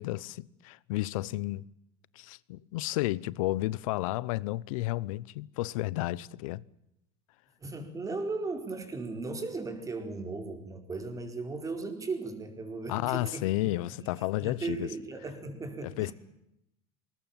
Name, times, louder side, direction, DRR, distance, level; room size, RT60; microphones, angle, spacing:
voice 1, 0.0-1.6 2.1-6.6 12.9-14.9 15.8-16.1, left 18 dB, 85° left, 0.8 m, -32 dB
voice 2, 7.6-14.1 14.4-16.1, right 3 dB, 20° right, 4.7 m, -37 dB
21.0 x 19.0 x 9.0 m
supercardioid pair, 125°, 17 cm